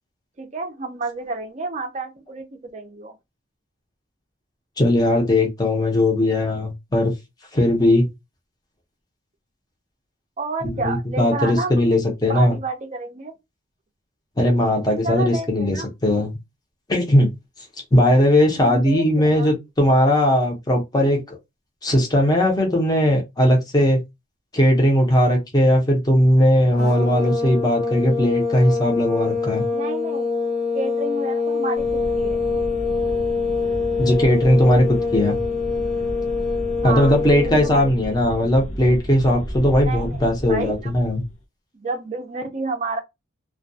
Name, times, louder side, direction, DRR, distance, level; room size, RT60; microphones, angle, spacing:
voice 1, 0.4-3.1 10.4-11.9 12.3-13.4 15.0-15.9 18.6-19.5 29.7-30.3 30.7-32.4 36.8-37.9 38.2-38.3 39.7-40.2 40.5-40.9 41.7-43.0, right 3 dB, 35° right, 0.4 m, -30 dB
voice 2, 4.8-7.1 7.5-8.1 10.6-12.5 14.4-16.3 16.9-17.3 17.9-21.4 21.8-24.0 24.5-29.6 34.0-35.4 36.8-41.2, left 1 dB, 20° left, 0.6 m, -18 dB
sound 1, 26.8-37.8, left 4 dB, 55° left, 0.9 m, -24 dB
sound 2, 31.8-41.4, equal, 85° left, 0.7 m, -33 dB
2.2 x 2.2 x 2.6 m
head